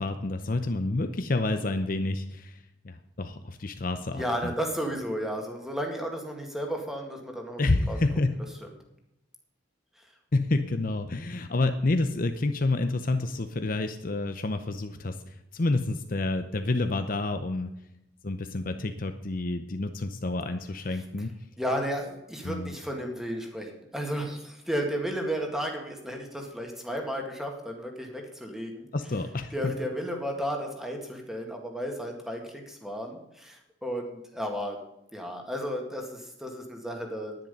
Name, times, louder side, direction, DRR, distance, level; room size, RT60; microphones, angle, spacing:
voice 1, 0.0-4.5 7.6-8.4 10.3-17.7 18.2-21.4 22.4-22.7 28.9-29.7, left 2 dB, 45° left, 8 dB, 0.7 m, -29 dB
voice 2, 4.1-7.6 7.9-8.0 20.9-21.0 21.6-28.9 29.5-34.8 35.1-37.4, equal, ahead, 2 dB, 1.9 m, -33 dB
10.5 x 10.5 x 5.4 m, 0.86 s
head